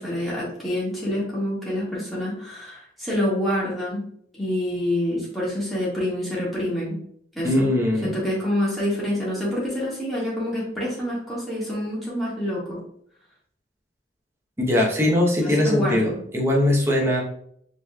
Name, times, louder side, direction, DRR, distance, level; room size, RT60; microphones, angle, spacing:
voice 1, 0.0-4.0 4.4-7.0 7.3-7.7 8.0-12.8 15.4-16.1, left 1 dB, ahead, -8 dB, 1.5 m, -27 dB
voice 2, 7.4-8.1 14.6-17.2, left 1 dB, 15° right, -2 dB, 0.8 m, -21 dB
5.3 x 3.1 x 2.2 m, 0.67 s
head